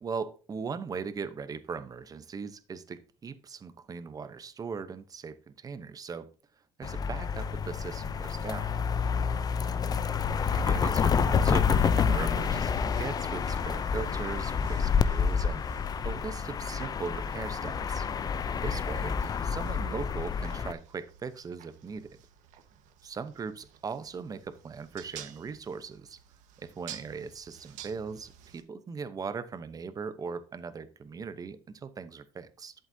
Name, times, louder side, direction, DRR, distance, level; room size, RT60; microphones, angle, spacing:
voice 1, 0.0-6.3 6.8-8.7 10.2-18.1 18.6-19.2 19.4-22.1 23.0-26.2 26.6-32.7, right 5 dB, 30° right, 12 dB, 0.9 m, -39 dB
sound 1, 6.8-20.7, left 6 dB, 30° left, 0.5 m, -28 dB
sound 2, 12.3-28.6, right 9 dB, 70° right, 1.4 m, -52 dB
11.5 x 8.0 x 2.8 m, 0.36 s
cardioid pair, 130°, 13 cm